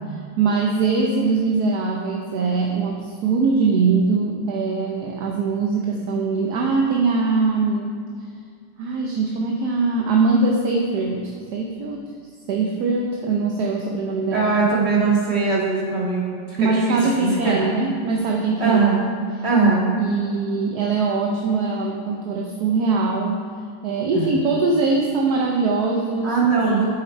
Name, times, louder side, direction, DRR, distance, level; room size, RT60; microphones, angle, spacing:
voice 1, 0.1-8.0 8.8-12.1 12.5-14.5 16.6-18.8 20.0-23.4 23.8-26.4, right 4 dB, 65° right, 0 dB, 1.3 m, -22 dB
voice 2, 14.3-17.7 18.6-19.0 19.4-19.9 24.1-24.3 26.2-26.8, right 4 dB, 35° right, -4 dB, 2.1 m, -20 dB
8.7 x 7.5 x 4.5 m, 2.2 s
omnidirectional pair, 1.9 m